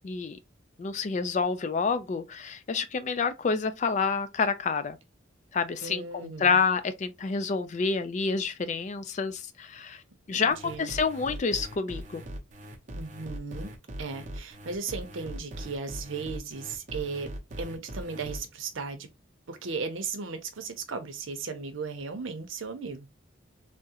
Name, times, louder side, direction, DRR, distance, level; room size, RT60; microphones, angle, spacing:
voice 1, 0.0-0.4 0.8-5.0 5.5-10.0 10.3-12.2, left 5 dB, 35° left, 0.3 m, -28 dB
voice 2, 5.8-6.6 10.3-10.9 12.9-13.7 14.0-17.3 17.6-19.1 19.5-23.2, right 4 dB, 80° right, 0.7 m, -36 dB
sound 1, 10.5-18.4, equal, 40° right, 0.7 m, -40 dB
3.6 x 2.1 x 2.8 m
head